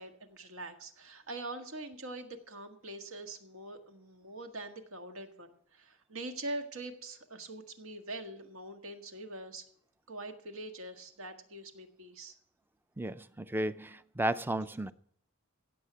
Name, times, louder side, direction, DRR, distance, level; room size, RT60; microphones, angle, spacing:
voice 1, 0.0-9.6 10.1-12.3, right 2 dB, 80° right, 1.7 m, -43 dB
voice 2, 13.0-14.9, right 1 dB, 10° right, 0.4 m, -33 dB
16.5 x 7.6 x 5.7 m
head